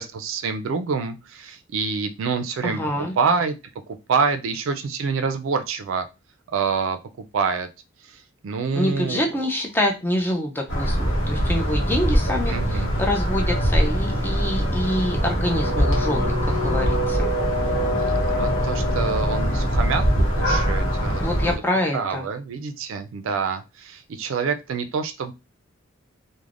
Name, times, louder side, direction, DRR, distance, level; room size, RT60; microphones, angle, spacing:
voice 1, 0.0-2.8 3.2-3.6 4.1-6.1 6.5-7.7 8.0-9.3 12.5-12.9 18.0-20.0 20.4-21.2 21.9-25.3, right 5 dB, 70° right, 9 dB, 0.3 m, -26 dB
voice 2, 2.6-3.1 8.7-17.3 21.2-22.3, left 1 dB, 10° left, 1 dB, 0.4 m, -26 dB
sound 1, 10.7-21.6, equal, 55° left, 0.9 m, -22 dB
3.2 x 2.1 x 2.4 m, 0.26 s
head